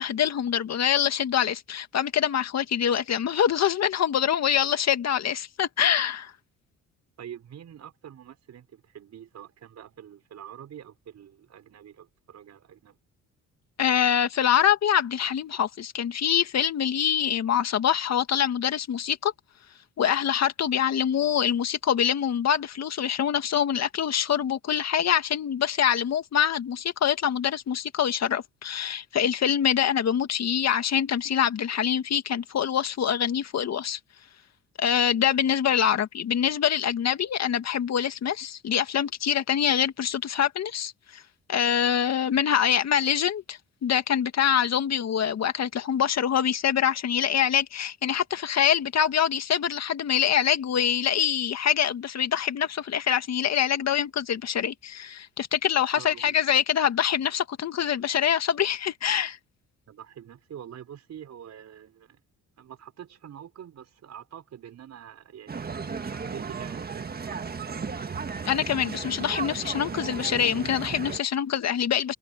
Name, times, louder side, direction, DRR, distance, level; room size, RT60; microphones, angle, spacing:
voice 1, 0.0-6.3 13.8-19.3 20.0-34.0 34.8-41.2 41.5-59.4 68.5-72.1, left 9 dB, 60° left, 2.0 m, -25 dB
voice 2, 7.2-13.0 55.9-56.3 59.9-62.2 62.6-67.5, right 9 dB, 65° right, 5.6 m, -45 dB
sound 1, 65.5-71.2, right 5 dB, 30° right, 1.7 m, -35 dB
cardioid pair, 90°, 30 cm